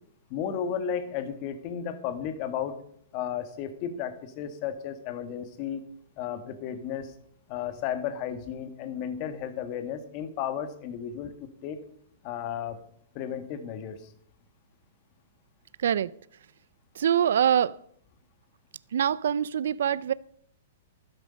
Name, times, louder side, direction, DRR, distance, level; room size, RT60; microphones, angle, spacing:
voice 1, 0.3-2.8 3.1-5.8 6.2-7.1 7.5-11.3 11.6-11.8 12.2-12.8 13.1-14.1, left 8 dB, 40° left, 10 dB, 1.8 m, -33 dB
voice 2, 15.8-16.1 17.0-17.8 18.9-20.1, right 9 dB, 75° right, 20 dB, 0.4 m, -24 dB
12.5 x 11.5 x 5.2 m, 0.63 s
hypercardioid pair, 135°, 0 cm